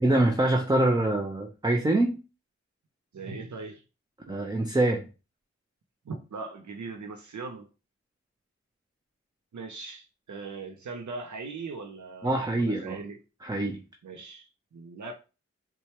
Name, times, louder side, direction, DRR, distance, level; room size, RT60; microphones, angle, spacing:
voice 1, 0.0-2.2 4.3-5.0 12.2-13.0 13.4-13.8, right 1 dB, 15° right, 3 dB, 0.6 m, -24 dB
voice 2, 3.1-3.8 4.3-4.4 6.0-7.7 9.5-13.2 14.0-15.1, right 4 dB, 80° right, 3 dB, 0.6 m, -40 dB
4.4 x 2.2 x 2.8 m, 0.32 s
cardioid pair, 40°, 29 cm